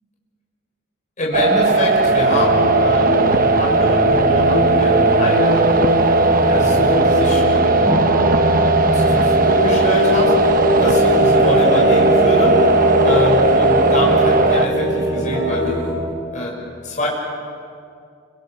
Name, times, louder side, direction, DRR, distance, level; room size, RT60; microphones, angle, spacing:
voice 1, 1.2-5.7 6.4-7.8 8.6-10.4 10.8-12.7 13.0-15.8 16.3-16.6 16.8-17.1, left 1 dB, 40° left, -3 dB, 6.4 m, -24 dB
sound 1, 1.3-14.7, right 3 dB, 45° right, 0.9 m, -17 dB
sound 2, 2.0-15.9, equal, 20° right, 6.4 m, -20 dB
28.5 x 26.0 x 6.7 m, 2.4 s
head